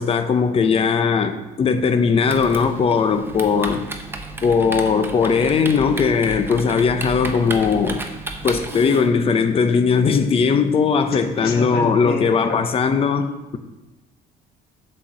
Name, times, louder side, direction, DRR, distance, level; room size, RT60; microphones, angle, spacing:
voice 1, 0.0-3.9 4.4-8.0 8.4-13.3, left 5 dB, 35° left, 0.7 m, -19 dB
Typing, 2.2-9.1, right 2 dB, 15° right, 0.8 m, -33 dB
voice 2, 11.1-12.6, left 4 dB, 65° left, 1.4 m, -29 dB
7.6 x 4.4 x 6.3 m
cardioid pair, 110°, 17 cm